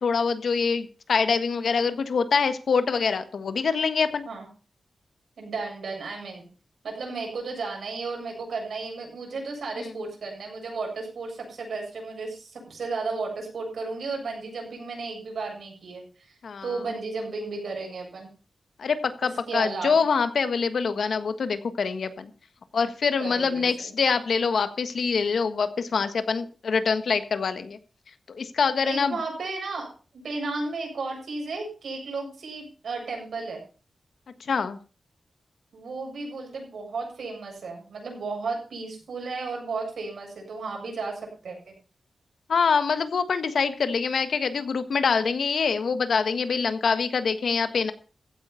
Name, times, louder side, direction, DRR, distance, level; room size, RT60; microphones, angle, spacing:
voice 1, 0.0-4.3 9.8-9.9 16.4-16.7 18.8-22.3 22.7-27.8 28.3-29.1 34.5-34.8 42.5-47.9, left 5 dB, 70° left, 10 dB, 1.4 m, -25 dB
voice 2, 5.4-6.5 6.8-16.3 16.6-18.3 19.5-20.0 23.2-23.9 28.9-33.6 35.7-41.7, right 3 dB, 85° right, 1 dB, 7.5 m, -34 dB
15.5 x 9.4 x 5.7 m, 0.37 s
wide cardioid pair, 165°, 0 cm